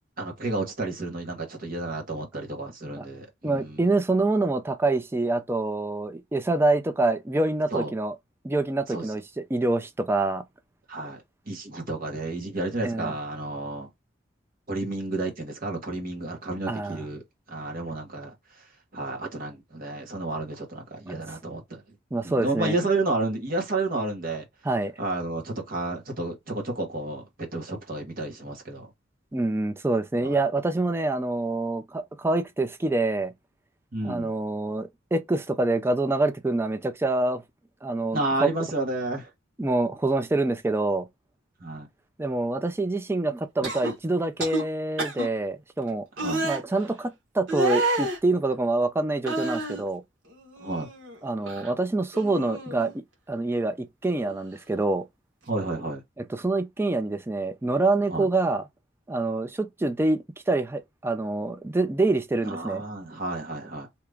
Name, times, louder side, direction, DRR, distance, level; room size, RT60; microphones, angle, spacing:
voice 1, 0.2-3.8 7.7-7.9 8.9-9.1 10.9-13.9 14.7-17.2 17.5-18.3 18.9-21.8 22.2-24.4 25.0-28.9 30.2-30.4 33.9-34.3 38.1-39.3 41.6-41.9 46.2-46.4 50.6-50.9 55.5-56.0 58.1-58.3 62.5-63.9, right 2 dB, 50° right, 1.2 m, -31 dB
voice 2, 3.4-8.2 8.4-10.4 12.8-13.1 16.7-17.0 21.1-21.2 22.1-22.8 24.6-24.9 29.3-33.3 34.0-37.4 37.8-38.5 39.6-41.1 42.2-46.1 46.4-50.0 51.2-52.9 53.3-55.0 56.2-58.6 59.1-62.8, right 2 dB, 10° right, 0.4 m, -26 dB
sound 1, 43.6-43.9 44.4-44.6 45.0-45.3 46.2-46.6 47.5-48.2 49.2-49.8 50.3-51.2 51.4-51.7 52.1-52.9 54.2-54.4, right 2 dB, 80° right, 1.3 m, -29 dB
2.9 x 2.4 x 3.3 m
head